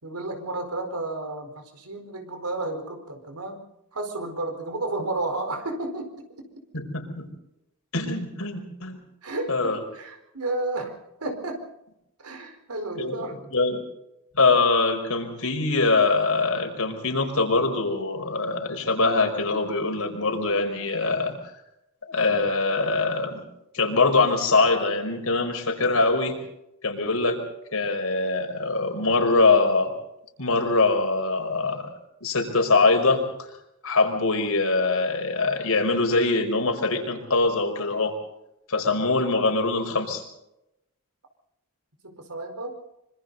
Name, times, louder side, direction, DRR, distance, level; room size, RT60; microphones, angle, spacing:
voice 1, 0.0-3.6 3.9-6.5 9.2-11.6 12.2-13.4 42.0-42.8, right 2 dB, 85° right, 5 dB, 4.6 m, -32 dB
voice 2, 6.7-7.3 7.9-9.0 9.5-9.8 13.0-13.8 14.3-21.3 22.1-23.4 23.7-26.4 26.8-27.4 27.7-29.9 30.4-31.9 32.2-33.2 33.8-38.1 38.7-40.2, left 3 dB, 70° left, 3 dB, 5.2 m, -23 dB
25.5 x 25.5 x 4.1 m, 0.85 s
head